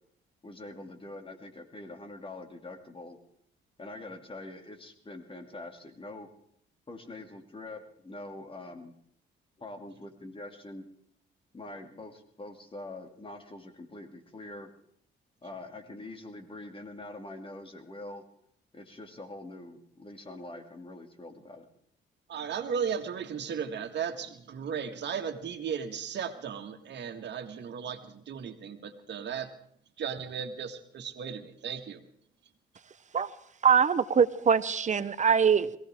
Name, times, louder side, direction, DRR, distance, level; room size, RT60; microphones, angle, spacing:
voice 1, 0.4-3.2 3.8-6.3 6.9-8.9 9.6-10.9 11.5-14.7 15.4-18.2 18.7-21.7, left 2 dB, 25° left, 5 dB, 2.7 m, -44 dB
voice 2, 22.3-29.5 30.0-32.0, right 7 dB, 60° right, 6 dB, 2.0 m, -35 dB
voice 3, 33.6-35.8, right 6 dB, 40° right, 15 dB, 0.9 m, -23 dB
22.5 x 17.5 x 3.7 m, 0.68 s
cardioid pair, 90°, 20 cm